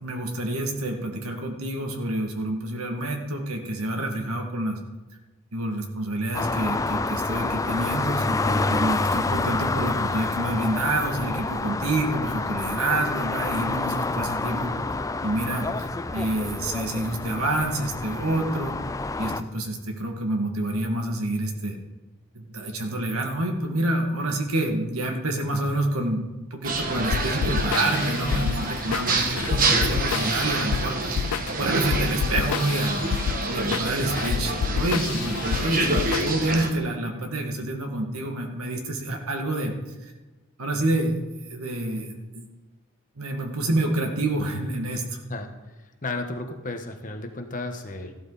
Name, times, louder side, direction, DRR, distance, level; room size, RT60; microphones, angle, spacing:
voice 1, 0.0-4.8 5.5-14.7 15.2-18.7 19.2-21.8 22.3-26.3 26.5-33.0 33.5-39.7 40.6-41.2 41.5-42.5 43.2-45.2, right 1 dB, 80° right, 3 dB, 2.1 m, -28 dB
sound 1, 6.3-19.4, left 3 dB, 15° left, 0.4 m, -28 dB
sound 2, 26.6-36.7, right 2 dB, 40° right, 1.4 m, -27 dB
sound 3, 27.1-36.7, left 7 dB, 80° left, 0.3 m, -29 dB
voice 2, 45.8-48.1, left 2 dB, 40° left, 5 dB, 1.4 m, -34 dB
14.5 x 12.5 x 4.2 m, 1.2 s
head